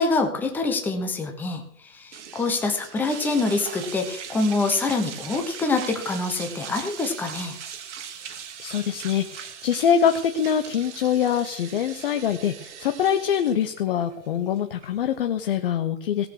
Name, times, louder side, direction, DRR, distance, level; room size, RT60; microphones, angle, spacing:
voice 1, 0.0-7.6, left 3 dB, 5° left, 4 dB, 0.9 m, -25 dB
sound 1, 2.1-15.6, right 8 dB, 50° right, 1.9 m, -40 dB
voice 2, 8.6-16.3, left 8 dB, 40° left, 7 dB, 0.9 m, -24 dB
17.5 x 6.7 x 6.4 m, 0.63 s
hypercardioid pair, 150°, 44 cm